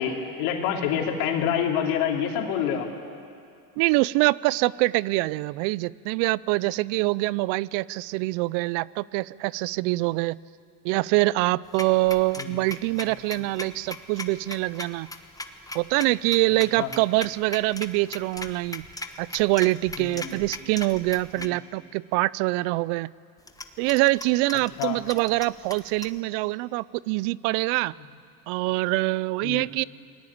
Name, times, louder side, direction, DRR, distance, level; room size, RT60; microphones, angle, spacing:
voice 1, 0.0-2.9 12.4-12.5 16.8-16.9 20.0-20.3 21.3-21.5 24.8-25.0 29.4-29.7, left 8 dB, 75° left, 2 dB, 3.7 m, -27 dB
voice 2, 3.8-10.4 10.8-15.1 15.7-18.8 19.2-23.1 23.8-27.9 28.5-29.8, right 21 dB, 65° right, 22 dB, 0.6 m, -24 dB
sound 1, 11.7-21.5 23.4-26.2, left 2 dB, 10° left, 1.2 m, -39 dB
28.5 x 20.0 x 8.7 m, 2.3 s
supercardioid pair, 115°, 46 cm